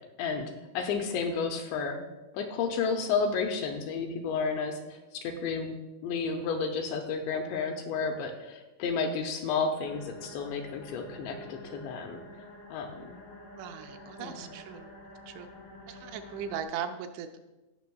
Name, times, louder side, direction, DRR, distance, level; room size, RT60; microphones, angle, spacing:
voice 1, 0.2-2.0 2.3-5.8 6.0-12.2 12.7-13.2 14.2-14.4, left 5 dB, 80° left, 3 dB, 2.7 m, -32 dB
sound 1, 9.8-16.6, equal, 65° left, 1.4 m, -48 dB
voice 2, 13.6-14.9 15.3-15.5 15.9-17.4, right 8 dB, 85° right, 7 dB, 2.9 m, -38 dB
16.0 x 6.1 x 2.3 m, 1.1 s
omnidirectional pair, 5.4 m